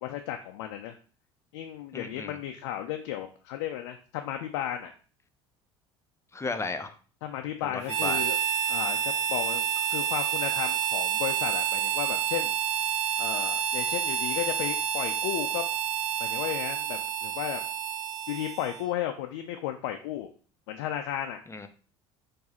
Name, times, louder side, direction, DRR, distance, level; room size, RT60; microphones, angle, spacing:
voice 1, 0.0-1.0 1.5-4.9 7.2-8.4 8.7-12.5 13.2-15.6 16.2-17.6 18.3-20.3 20.7-21.4, left 11 dB, 75° left, 5 dB, 0.5 m, -34 dB
voice 2, 1.9-2.4 6.3-6.9 7.6-8.2 21.5-21.7, left 3 dB, 20° left, 9 dB, 0.7 m, -34 dB
Harmonica, 7.9-18.9, right 9 dB, 80° right, 0.8 m, -29 dB
4.7 x 2.7 x 4.2 m, 0.39 s
hypercardioid pair, 70°, 15 cm